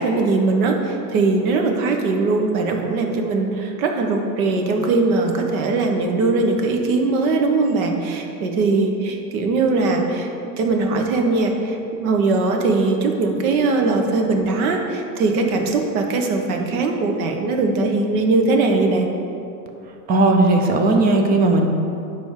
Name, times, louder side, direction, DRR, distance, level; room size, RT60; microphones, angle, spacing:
voice 1, 0.0-10.3 10.6-19.1, right 3 dB, 60° right, 3 dB, 1.3 m, -20 dB
voice 2, 20.1-21.7, right 2 dB, 20° right, 4 dB, 0.6 m, -16 dB
10.5 x 3.7 x 6.6 m, 2.7 s
supercardioid pair, 140°, 48 cm